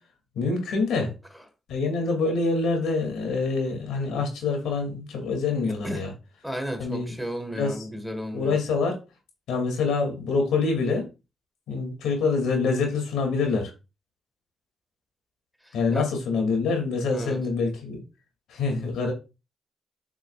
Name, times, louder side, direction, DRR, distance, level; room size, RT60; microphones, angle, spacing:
voice 1, 0.4-1.1 1.7-6.1 6.8-7.1 7.5-7.8 8.3-9.0 9.5-11.1 11.7-13.7 15.7-18.0 18.5-19.1, left 4 dB, 90° left, 2.4 m, -25 dB
voice 2, 6.4-8.6 15.6-16.1 17.1-17.4, equal, ahead, 1.5 m, -33 dB
7.9 x 6.2 x 2.4 m
cardioid pair, 60°, 0 cm